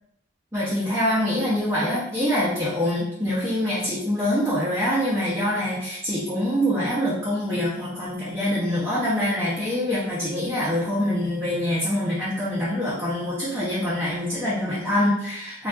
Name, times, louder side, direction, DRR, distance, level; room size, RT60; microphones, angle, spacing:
voice 1, 0.5-15.7, left 1 dB, 15° right, -9 dB, 0.5 m, -25 dB
2.3 x 2.3 x 3.5 m, 0.78 s
head